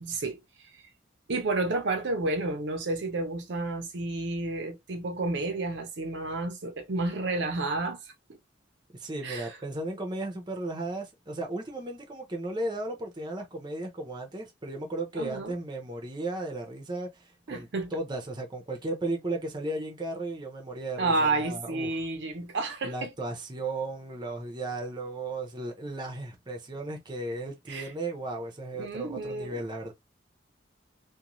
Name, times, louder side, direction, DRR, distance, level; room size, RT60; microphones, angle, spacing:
voice 1, 0.0-0.8 1.3-8.1 9.2-9.6 15.1-15.6 17.5-18.0 21.0-23.1 27.7-27.9 28.8-29.6, right 2 dB, 65° right, 0.6 m, -31 dB
voice 2, 8.9-21.9 22.8-29.9, right 2 dB, 25° right, 0.7 m, -35 dB
2.5 x 2.2 x 3.0 m
head